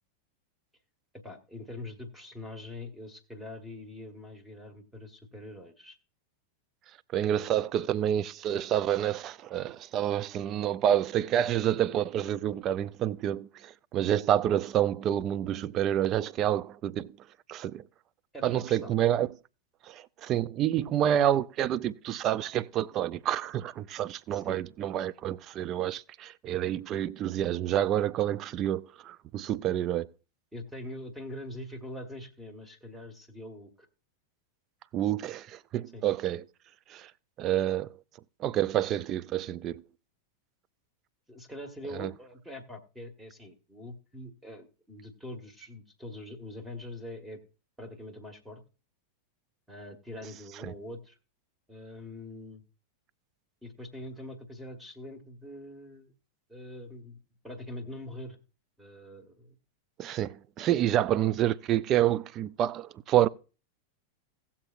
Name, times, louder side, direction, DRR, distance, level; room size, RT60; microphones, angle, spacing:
voice 1, 1.2-6.0 7.3-7.6 18.3-19.0 24.3-24.6 30.5-33.9 35.9-36.0 41.3-47.4 47.8-48.6 49.7-51.2 51.7-52.6 53.6-56.1 56.5-57.2 57.4-58.4 58.8-59.6 61.1-61.3, left 1 dB, 5° right, 1.5 m, -43 dB
voice 2, 7.1-17.1 17.5-17.8 18.4-19.3 19.8-30.1 34.9-36.4 36.9-37.1 37.4-37.9 38.4-39.8 41.9-42.1 60.0-63.3, right 11 dB, 35° right, 0.4 m, -28 dB
17.5 x 7.2 x 2.5 m
figure-of-eight pair, 90°, 0 cm